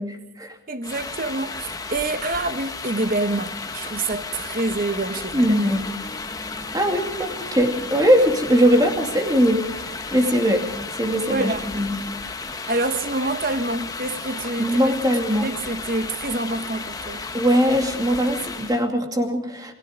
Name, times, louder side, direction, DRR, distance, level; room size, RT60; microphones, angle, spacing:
voice 1, 0.1-0.5 5.3-5.9 6.7-10.6 11.0-12.0 14.6-15.5 17.3-19.7, equal, 20° right, 2.5 m, -21 dB
voice 2, 0.7-5.5 11.2-11.7 12.7-14.9 15.4-17.3, right 2 dB, 45° right, 1.2 m, -27 dB
sound 1, 0.8-18.9, left 4 dB, 20° left, 1.1 m, -34 dB
sound 2, 5.7-12.2, equal, 35° left, 7.3 m, -44 dB
29.0 x 19.0 x 5.1 m
head